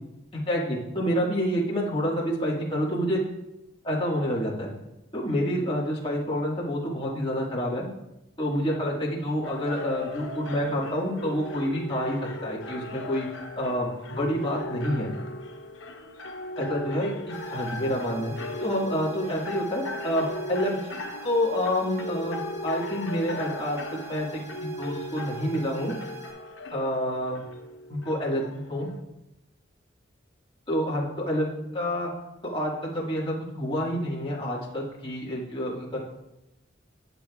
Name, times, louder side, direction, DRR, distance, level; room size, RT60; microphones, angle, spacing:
voice 1, 0.5-3.2 3.8-4.7 5.1-7.9 8.4-13.3 13.6-15.1 16.5-18.3 18.6-20.8 21.2-23.8 24.1-24.3 24.6-25.9 26.7-27.4 27.9-28.9 30.7-31.5 31.7-32.1 32.4-36.0, equal, 25° left, -5 dB, 1.7 m, -28 dB
sound 1, 9.4-29.0, left 1 dB, 85° left, 0.9 m, -37 dB
sound 2, 17.3-26.3, right 7 dB, 15° right, 2.9 m, -46 dB
20.0 x 6.9 x 2.4 m, 0.92 s
head